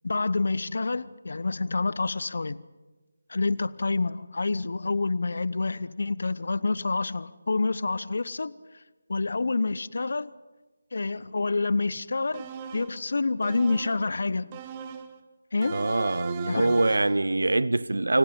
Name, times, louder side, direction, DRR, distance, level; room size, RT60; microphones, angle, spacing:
voice 1, 0.0-2.6 3.3-8.5 9.1-10.3 10.9-14.6 15.5-15.9 16.5-16.8, left 3 dB, 60° left, 0.9 m, -28 dB
sound 1, 12.3-13.0 13.4-14.1 14.5-15.2 15.6-17.2, right 8 dB, 25° right, 1.5 m, -39 dB
voice 2, 15.7-18.2, right 2 dB, 70° right, 0.8 m, -24 dB
29.0 x 29.0 x 5.4 m
figure-of-eight pair, 155°, 0 cm